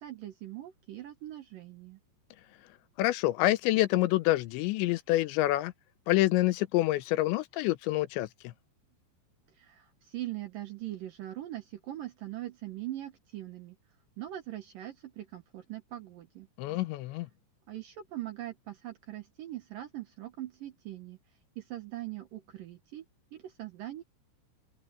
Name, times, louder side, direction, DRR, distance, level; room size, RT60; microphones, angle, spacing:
voice 1, 0.0-2.0 9.6-13.8 14.2-16.5 17.7-21.2 21.6-23.0 23.3-24.0, right 14 dB, 70° right, 2.2 m, -41 dB
voice 2, 3.0-5.7 6.1-8.5 16.6-17.3, left 17 dB, 80° left, 2.9 m, -27 dB
omnidirectional pair, 5.3 m